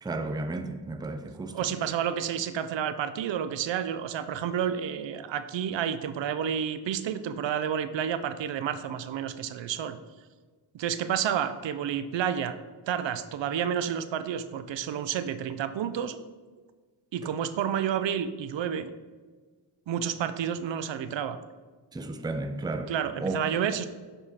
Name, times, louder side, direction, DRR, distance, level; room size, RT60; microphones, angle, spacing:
voice 1, 0.0-1.5 21.9-22.9 23.2-23.4, right 2 dB, 10° right, 0.4 m, -33 dB
voice 2, 1.5-10.0 10.7-12.5 12.9-16.2 17.1-18.9 19.9-21.4 22.9-23.9, right 8 dB, 75° right, 0.5 m, -30 dB
6.9 x 3.6 x 4.1 m
cardioid pair, 75°, 44 cm